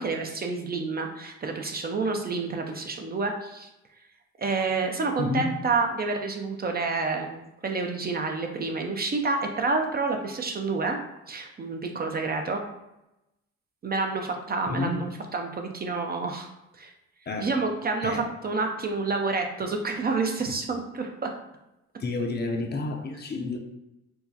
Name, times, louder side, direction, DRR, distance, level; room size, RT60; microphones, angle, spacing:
voice 1, 0.0-3.7 4.4-11.0 11.3-12.6 13.8-16.5 16.8-16.9 17.4-21.3, right 3 dB, 30° right, 3 dB, 0.4 m, -29 dB
voice 2, 5.2-5.7 14.7-15.2 17.3-17.6 18.0-18.4 22.0-23.6, left 3 dB, 35° left, 3 dB, 0.5 m, -30 dB
4.5 x 2.1 x 2.7 m, 0.92 s
cardioid pair, 90°, 30 cm